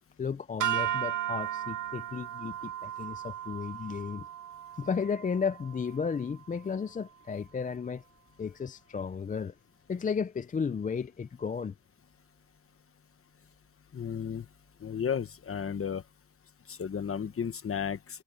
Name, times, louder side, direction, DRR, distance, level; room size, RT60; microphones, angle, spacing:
voice 1, 0.2-4.3 4.8-8.0 8.4-9.5 9.9-11.7, left 6 dB, 25° left, 0.4 m, -33 dB
sound 1, 0.6-7.0, right 12 dB, 65° right, 1.4 m, -36 dB
voice 2, 13.9-14.5 14.8-16.0 16.7-18.2, left 7 dB, 40° left, 1.1 m, -33 dB
wide cardioid pair, 165°, 33 cm